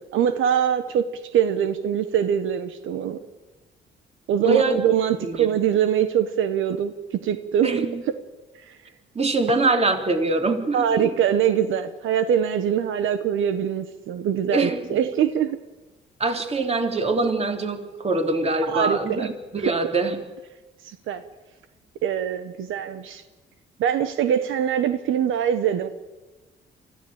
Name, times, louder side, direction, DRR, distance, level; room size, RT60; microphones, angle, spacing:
voice 1, 0.1-1.1 1.3-3.2 4.3-7.7 8.7-8.8 10.7-15.6 18.7-19.3 20.8-21.2 22.0-23.2 23.8-25.9, right 9 dB, 80° right, 10 dB, 1.3 m, -23 dB
voice 2, 4.4-4.8 5.2-5.5 7.6-8.0 9.1-11.1 14.5-15.0 16.2-20.2, right 3 dB, 30° right, 5 dB, 3.2 m, -23 dB
25.0 x 14.5 x 8.9 m, 1.2 s
cardioid pair, 90°, 20 cm